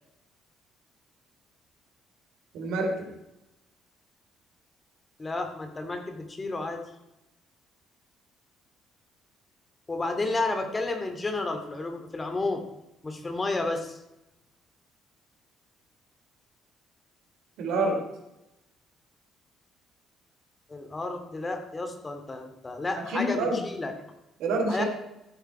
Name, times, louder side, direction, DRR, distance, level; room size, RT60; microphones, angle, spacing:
voice 1, 2.5-3.1 17.6-18.0 23.1-23.6 24.4-24.8, right 2 dB, 70° right, 2 dB, 3.4 m, -27 dB
voice 2, 5.2-6.8 9.9-12.6 13.0-14.0 20.7-23.9 24.7-24.8, left 2 dB, 30° left, 6 dB, 2.6 m, -31 dB
14.5 x 9.0 x 4.5 m, 0.91 s
hypercardioid pair, 50°, 0 cm